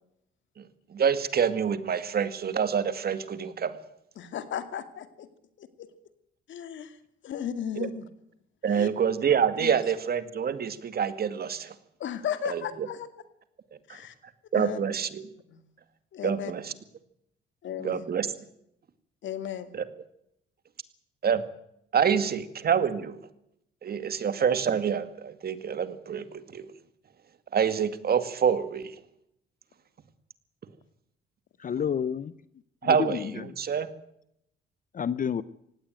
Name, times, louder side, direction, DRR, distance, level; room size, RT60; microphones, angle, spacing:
voice 1, 0.6-3.8 7.8-7.9 8.6-11.7 12.5-12.9 13.9-14.0 14.5-15.2 16.2-16.7 17.8-18.3 19.7-19.8 21.2-21.4 21.9-23.2 23.8-26.7 27.5-29.0 32.8-33.9, right 7 dB, 50° right, 2.2 m, -27 dB
voice 2, 4.2-5.1 5.8-5.9 6.5-6.9 7.2-8.1 8.7-8.9 9.6-9.7 12.0-13.1 13.9-14.1 14.5-14.8 15.5-15.6 16.1-16.5 17.6-18.1 19.2-19.7, left 9 dB, 70° left, 2.4 m, -34 dB
voice 3, 31.6-32.4 32.8-33.6 34.9-35.4, left 8 dB, 40° left, 0.8 m, -30 dB
18.5 x 17.0 x 9.1 m
cardioid pair, 90°, 20 cm